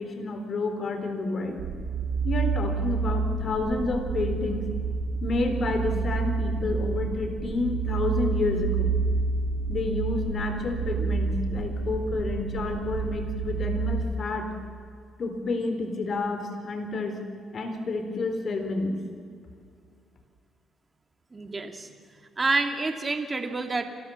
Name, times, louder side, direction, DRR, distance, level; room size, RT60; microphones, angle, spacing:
voice 1, 0.0-1.6 2.2-4.7 5.2-8.9 9.7-14.5 15.2-17.2 17.5-19.0, left 3 dB, 50° left, 6 dB, 3.9 m, -29 dB
sound 1, 1.6-14.0, right 4 dB, 85° right, 2.0 m, -29 dB
voice 2, 21.3-21.9 22.4-23.8, right 3 dB, 25° right, 6 dB, 2.5 m, -28 dB
29.5 x 14.0 x 7.2 m, 2.2 s
cardioid pair, 90°, 0 cm